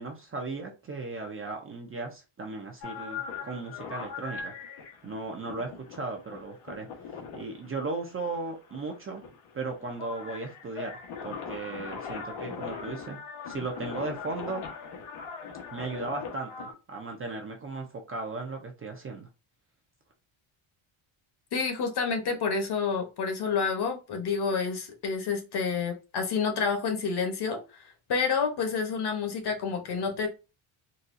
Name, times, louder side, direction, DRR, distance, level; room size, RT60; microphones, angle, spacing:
voice 1, 0.0-4.5 5.0-6.9 7.3-9.2 9.5-13.2 13.5-14.7 15.7-19.3, right 3 dB, 25° right, 0.5 m, -36 dB
sound 1, 2.8-16.7, left 5 dB, 85° left, 1.2 m, -40 dB
voice 2, 21.5-30.3, left 5 dB, 50° left, 1.0 m, -29 dB
4.0 x 2.3 x 2.5 m
cardioid pair, 155°, 50 cm